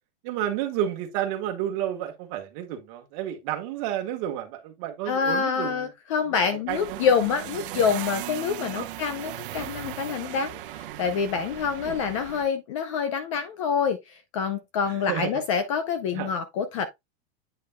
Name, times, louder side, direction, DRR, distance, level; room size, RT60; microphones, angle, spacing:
voice 1, 0.2-5.9 6.3-7.0 7.5-7.8 8.7-8.9 11.8-12.0 14.9-15.4 16.1-16.3, right 11 dB, 30° right, 1.4 m, -31 dB
voice 2, 5.1-16.9, left 6 dB, 30° left, 0.5 m, -27 dB
sound 1, 6.7-12.4, right 13 dB, 55° right, 0.9 m, -37 dB
8.7 x 5.2 x 2.2 m
supercardioid pair, 175°, 33 cm